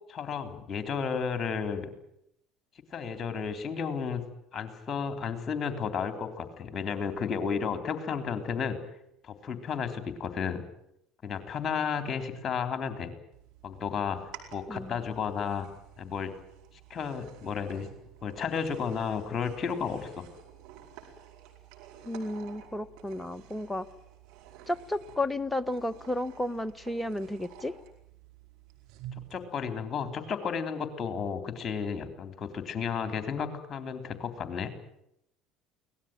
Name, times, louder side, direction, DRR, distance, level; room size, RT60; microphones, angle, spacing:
voice 1, 0.1-1.9 2.9-4.2 4.5-8.8 9.2-10.6 11.2-13.1 13.6-14.2 14.5-15.7 16.0-16.3 16.9-17.9 18.2-20.2 29.3-34.7, left 6 dB, 35° left, 8 dB, 3.7 m, -32 dB
sound 1, 13.3-29.4, right 10 dB, 70° right, 4.9 m, -51 dB
voice 2, 14.7-15.0 22.0-23.9 24.7-27.7, left 1 dB, 10° left, 12 dB, 1.3 m, -33 dB
23.5 x 18.5 x 9.4 m, 0.78 s
hypercardioid pair, 65°, 0 cm